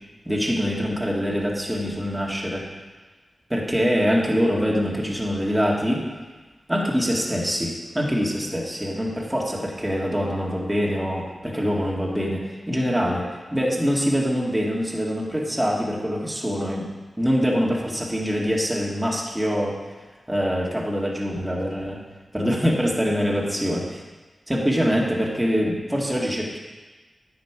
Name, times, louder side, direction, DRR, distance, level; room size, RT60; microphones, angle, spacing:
voice 1, 0.3-2.6 3.5-6.0 6.7-13.3 13.5-16.9 17.2-19.8 20.3-22.0 22.3-23.8 24.5-26.6, equal, 10° right, -3 dB, 2.1 m, -24 dB
9.9 x 6.7 x 4.9 m, 1.3 s
cardioid pair, 60°, 0 cm